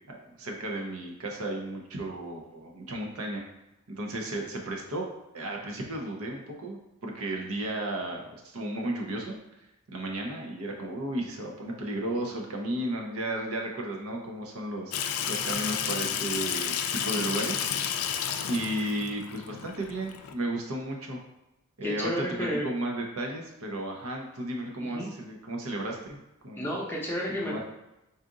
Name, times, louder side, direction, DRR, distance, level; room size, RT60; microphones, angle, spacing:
voice 1, 0.1-3.4 3.9-5.1 5.3-9.4 9.9-14.9 15.3-18.0 18.5-21.2 21.8-26.2 26.4-26.7 27.4-27.6, right 1 dB, 75° right, 1 dB, 0.8 m, -34 dB
Water tap faucet / Sink (filling or washing), 14.9-20.3, left 8 dB, 75° left, 0.4 m, -31 dB
voice 2, 21.8-22.6 24.8-25.1 26.6-27.6, equal, 10° left, -4 dB, 0.7 m, -32 dB
4.2 x 2.5 x 3.8 m, 0.95 s
head